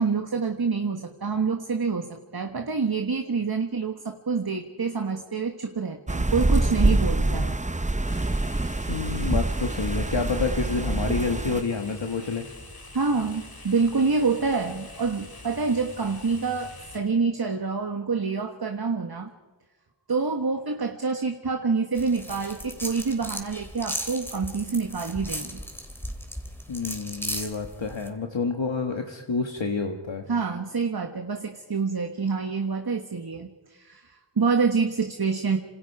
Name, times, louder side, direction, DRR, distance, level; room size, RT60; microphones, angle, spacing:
voice 1, 0.0-7.6 12.9-19.3 20.1-25.6 30.3-35.6, right 4 dB, 50° right, 5 dB, 1.5 m, -27 dB
sound 1, 6.1-11.6, right 2 dB, 15° right, 0.8 m, -25 dB
voice 2, 7.1-7.5 8.9-12.4 26.7-30.2, left 4 dB, 60° left, 3 dB, 1.7 m, -29 dB
sound 2, 8.0-17.0, left 2 dB, 45° left, 3.3 m, -45 dB
sound 3, 22.0-28.1, equal, 5° left, 3.4 m, -36 dB
27.0 x 27.0 x 4.8 m, 1.3 s
wide cardioid pair, 50°, 50 cm